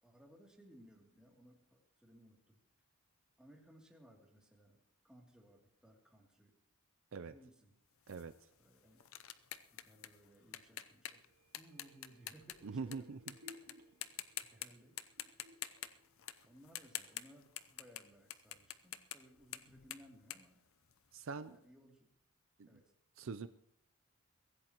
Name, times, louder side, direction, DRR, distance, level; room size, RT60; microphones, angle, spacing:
voice 1, 0.0-2.6 3.4-4.8 5.0-6.5 7.3-7.7 8.6-9.1 9.7-11.2 11.5-13.4 14.1-14.9 16.5-20.6 21.4-22.1 22.7-22.8, equal, 5° right, -1 dB, 2.7 m, -62 dB
sound 1, 8.1-13.0 13.3-13.7 14.0-14.7 15.0-21.3, left 12 dB, 65° left, 0.7 m, -47 dB
voice 2, 8.1-8.5 12.6-13.4 21.1-21.6 22.6-22.8 23.2-23.5, right 4 dB, 60° right, 12 dB, 0.5 m, -44 dB
sound 2, 11.2-16.9 17.3-17.4, left 1 dB, 80° right, 3.1 m, -63 dB
23.5 x 15.5 x 3.0 m, 0.71 s
head